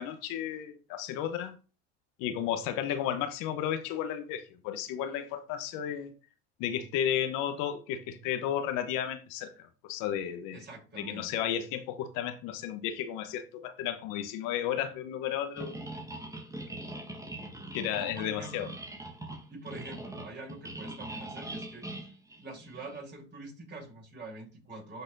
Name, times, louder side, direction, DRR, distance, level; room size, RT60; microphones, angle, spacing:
voice 1, 0.0-1.5 2.2-6.1 6.6-10.6 11.0-15.7 17.7-18.7, left 10 dB, 70° left, 1.0 m, -33 dB
voice 2, 10.5-11.3 18.0-18.8 19.5-21.9 22.4-25.0, right 2 dB, 30° right, 4.1 m, -45 dB
sound 1, 15.6-23.0, right 1 dB, 10° right, 1.3 m, -42 dB
12.0 x 4.0 x 2.6 m
supercardioid pair, 85°, 33 cm